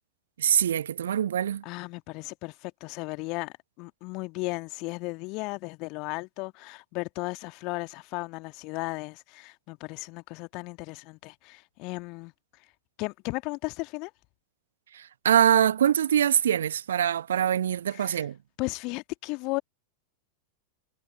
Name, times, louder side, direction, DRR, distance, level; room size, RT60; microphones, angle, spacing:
voice 1, 0.4-1.6 14.9-18.4, right 9 dB, 65° right, 1.1 m, -24 dB
voice 2, 1.6-12.3 13.0-14.1 17.9-18.3 18.6-19.6, left 26 dB, 40° left, 1.7 m, -35 dB
figure-of-eight pair, 90°, 0 cm